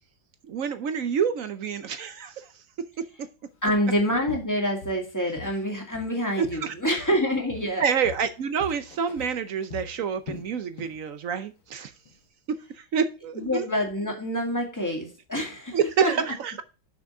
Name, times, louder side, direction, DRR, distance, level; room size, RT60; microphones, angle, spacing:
voice 1, 0.5-2.6 3.0-3.1 6.4-6.7 7.8-11.9 12.5-13.7 15.7-16.6, right 7 dB, 65° right, 11 dB, 0.8 m, -28 dB
voice 2, 3.6-7.8 13.4-16.1, equal, 10° left, 1 dB, 2.0 m, -27 dB
Walk footsteps, 3.7-3.9 4.3-5.7 5.9-7.2 7.5-11.0 11.3-11.6 12.1-12.2, left 5 dB, 85° left, 2.1 m, -43 dB
6.2 x 6.1 x 5.4 m, 0.32 s
omnidirectional pair, 2.1 m